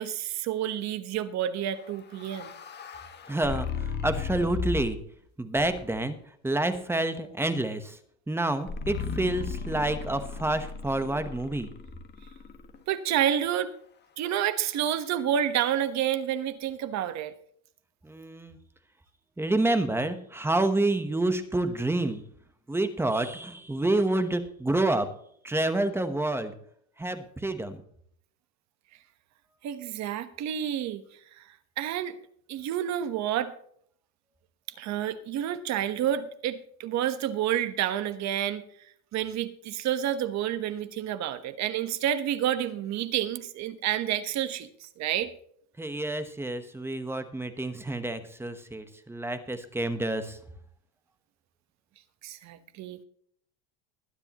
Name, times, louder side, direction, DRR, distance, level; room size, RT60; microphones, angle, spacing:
voice 1, 0.0-2.5 12.9-13.7 14.2-17.3 29.6-31.0 31.4-31.5 31.8-32.2 32.5-33.5 34.8-38.6 39.1-45.3 52.2-53.0, right 10 dB, 45° right, 11 dB, 1.2 m, -29 dB
sound 1, 1.8-5.1 5.6-6.1 8.7-12.8, left 5 dB, 25° left, 1.5 m, -36 dB
voice 2, 3.3-5.0 5.4-6.2 6.4-8.0 8.3-11.7 18.0-18.6 19.4-22.2 22.7-25.1 25.4-26.5 27.0-27.8 45.8-50.4, right 2 dB, 5° right, 9 dB, 1.0 m, -28 dB
21.0 x 9.8 x 3.0 m, 0.64 s
cardioid pair, 155°, 38 cm